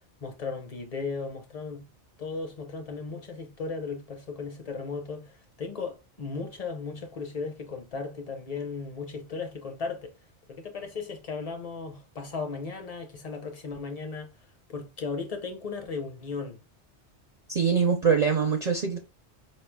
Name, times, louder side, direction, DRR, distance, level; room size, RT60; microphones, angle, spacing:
voice 1, 0.2-1.9 2.2-10.1 10.5-14.3 14.7-16.6, left 4 dB, 40° left, 0.8 m, -36 dB
voice 2, 17.5-19.0, right 6 dB, 50° right, 0.5 m, -23 dB
4.6 x 3.1 x 2.2 m
omnidirectional pair, 1.2 m